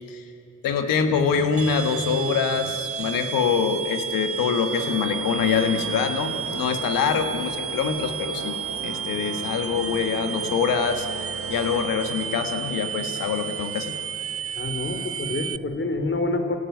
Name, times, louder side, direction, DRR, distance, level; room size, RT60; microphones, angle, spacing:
voice 1, 0.6-8.6 8.8-14.0, left 6 dB, 85° left, 7 dB, 1.8 m, -25 dB
sound 1, 1.6-15.6, right 7 dB, 45° right, 0.8 m, -32 dB
sound 2, 4.7-13.9, right 6 dB, 60° right, 1.5 m, -38 dB
voice 2, 14.5-16.6, left 2 dB, 40° left, 6 dB, 3.3 m, -27 dB
27.5 x 17.0 x 8.2 m, 3.0 s
supercardioid pair, 50°, 33 cm